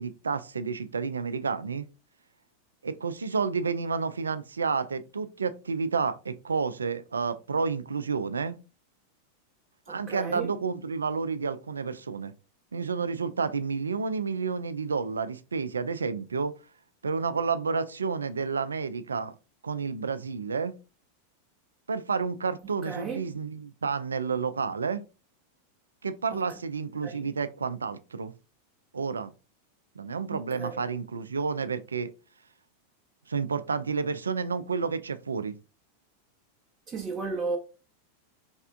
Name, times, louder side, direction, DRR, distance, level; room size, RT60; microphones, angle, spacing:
voice 1, 0.0-1.9 2.8-8.6 9.9-12.3 12.7-16.5 17.0-19.4 19.6-20.7 21.9-25.0 26.0-28.3 28.9-29.3 30.0-32.1 33.3-35.6, right 5 dB, 75° right, 0.3 m, -30 dB
voice 2, 9.9-10.5 22.6-23.3 26.3-26.4 27.0-27.2 30.3-30.8 36.9-37.6, right 4 dB, 20° right, 0.6 m, -35 dB
3.4 x 3.2 x 2.4 m
figure-of-eight pair, 90°, 0 cm